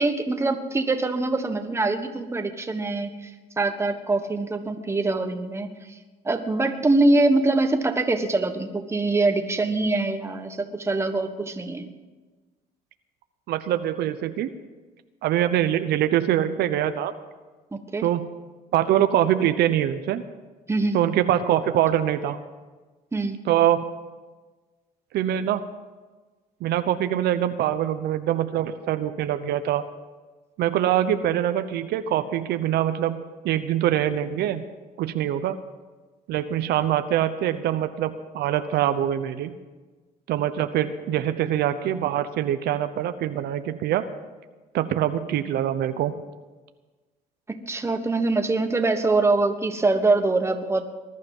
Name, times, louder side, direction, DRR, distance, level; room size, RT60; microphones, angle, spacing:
voice 1, 0.0-3.3 3.6-6.0 6.2-11.9 17.7-18.1 20.7-21.0 23.1-23.4 47.5-50.9, right 2 dB, 15° right, 7 dB, 1.3 m, -24 dB
voice 2, 13.5-14.5 15.2-17.1 18.0-18.2 18.7-20.2 20.9-22.4 23.5-23.8 25.1-25.6 26.6-29.8 30.6-34.6 35.0-35.6 36.3-39.5 40.3-44.0 44.7-46.1, right 11 dB, 75° right, 10 dB, 0.9 m, -24 dB
20.0 x 12.0 x 5.5 m, 1.3 s
cardioid pair, 110°, 17 cm